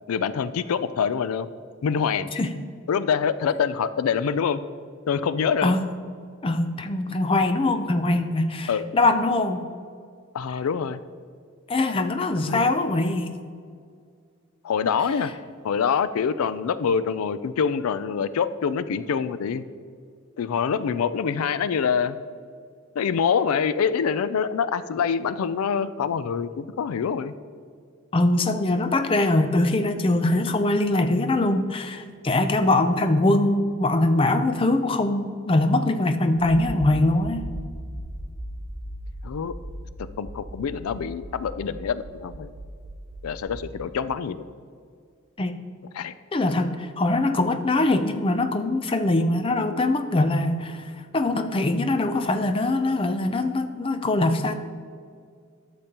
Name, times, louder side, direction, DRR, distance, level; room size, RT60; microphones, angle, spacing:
voice 1, 0.1-1.5 1.8-2.3 2.9-4.6 5.1-5.7 8.7-8.8 10.3-11.0 12.4-12.6 14.6-15.3 15.6-19.7 20.4-22.2 23.0-27.3 39.2-39.5 40.2-42.5 43.2-44.4 45.9-46.1, left 6 dB, 85° left, 14 dB, 0.4 m, -25 dB
voice 2, 6.4-9.7 11.7-13.3 28.1-37.4 45.4-45.6 46.3-54.6, left 2 dB, 25° left, 8 dB, 0.4 m, -22 dB
Accelerating revving vroom, 36.4-43.6, equal, 40° left, 2.3 m, -38 dB
12.0 x 6.8 x 2.9 m, 2.2 s
head